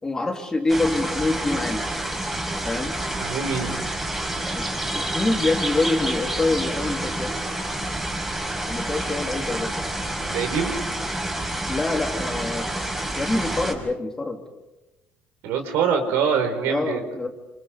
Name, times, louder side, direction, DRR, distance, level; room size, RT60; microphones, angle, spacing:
voice 1, 0.0-1.8 2.6-3.0 4.5-7.3 8.7-9.7 11.7-12.7 13.2-14.4 16.7-17.3, left 2 dB, 15° left, 3 dB, 3.2 m, -25 dB
sound 1, 0.7-13.7, right 1 dB, 10° right, 5.2 m, -28 dB
voice 2, 3.2-3.8 10.3-10.7 15.4-17.0, right 6 dB, 80° right, 6 dB, 4.7 m, -24 dB
28.0 x 27.5 x 5.2 m, 1.0 s
cardioid pair, 130°, 4 cm